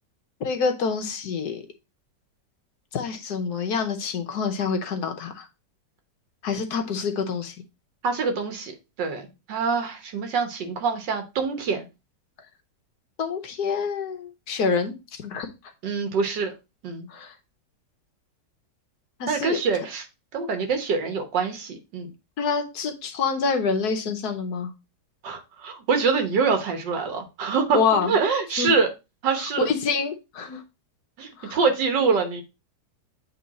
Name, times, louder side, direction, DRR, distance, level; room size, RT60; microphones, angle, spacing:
voice 1, 0.4-1.6 2.9-5.5 6.4-7.5 13.2-15.5 17.1-17.3 19.2-19.6 22.4-24.7 27.7-28.2 28.6-28.7 29.7-30.6 31.4-31.6, left 5 dB, 65° left, 5 dB, 1.3 m, -27 dB
voice 2, 8.0-8.7 9.0-11.9 15.8-16.5 16.8-17.1 19.3-20.1 20.3-22.1 25.2-28.9 29.2-29.7 31.2-32.4, right 5 dB, 75° right, 6 dB, 1.7 m, -25 dB
8.4 x 3.1 x 4.0 m, 0.26 s
omnidirectional pair, 1.9 m